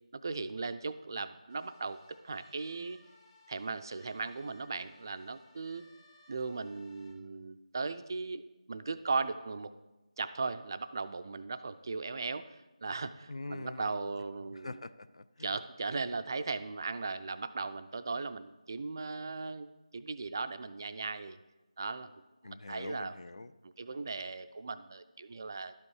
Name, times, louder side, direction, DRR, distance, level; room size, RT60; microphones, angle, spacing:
voice 1, 0.1-2.0 2.2-3.0 3.5-5.8 6.3-9.7 10.2-14.8 15.4-21.4 21.8-22.1 22.4-23.1 23.6-25.7, right 4 dB, 35° right, 12 dB, 0.4 m, -37 dB
fire service hooter, 1.5-7.1, left 2 dB, 20° left, 1.2 m, -62 dB
voice 2, 13.3-14.1 14.5-15.6 22.4-23.5, left 2 dB, 60° left, 13 dB, 0.5 m, -44 dB
12.0 x 5.2 x 4.8 m, 1.1 s
figure-of-eight pair, 165°, 4 cm